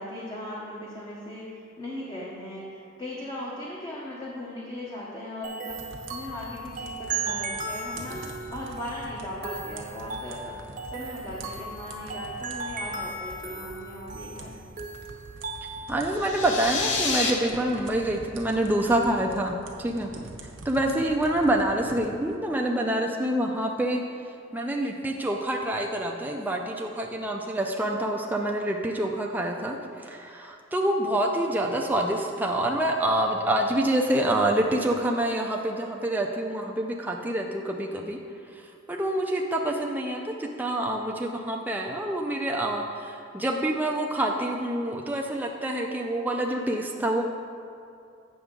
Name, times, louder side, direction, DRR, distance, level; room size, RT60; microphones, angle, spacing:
voice 1, 0.0-10.6 10.9-14.5, left 1 dB, 20° left, -5 dB, 0.8 m, -38 dB
sound 1, 5.4-16.1, right 4 dB, 45° right, 0.7 m, -36 dB
sound 2, 5.7-22.4, right 2 dB, 75° right, 0.7 m, -45 dB
voice 2, 15.9-20.1 20.7-24.0 24.5-38.2 38.9-47.2, right 1 dB, 10° right, 0 dB, 0.4 m, -27 dB
sound 3, 16.1-17.3, left 4 dB, 65° left, 0.8 m, -28 dB
8.1 x 6.0 x 3.7 m, 2.5 s
head